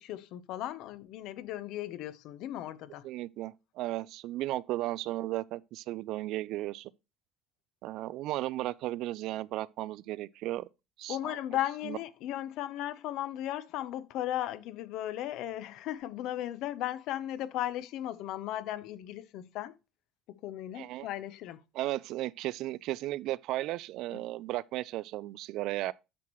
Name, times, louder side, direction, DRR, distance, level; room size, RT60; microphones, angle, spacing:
voice 1, 0.0-3.0 11.1-19.7 20.4-21.6 24.1-24.2, left 13 dB, 70° left, 0.7 m, -36 dB
voice 2, 3.0-6.9 7.8-10.7 11.0-11.4 11.8-12.0 20.8-21.1 21.7-25.9, right 16 dB, 70° right, 0.4 m, -35 dB
9.3 x 6.1 x 3.1 m
cardioid pair, 120°, 0 cm